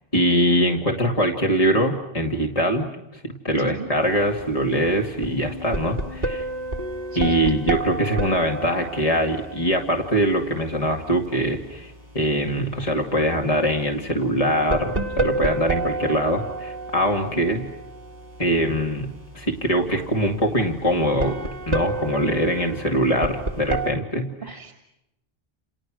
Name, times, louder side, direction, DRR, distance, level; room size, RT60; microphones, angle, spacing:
voice 1, 0.1-2.9 3.1-6.5 7.2-17.7 18.4-24.6, equal, 35° left, 1 dB, 2.4 m, -23 dB
voice 2, 3.6-3.9 7.1-7.4 17.5-17.6 24.4-24.7, right 6 dB, 60° right, 4 dB, 3.0 m, -35 dB
sound 1, 4.0-23.9, right 2 dB, 40° right, 2.2 m, -32 dB
29.5 x 29.0 x 6.3 m, 0.87 s
omnidirectional pair, 1.0 m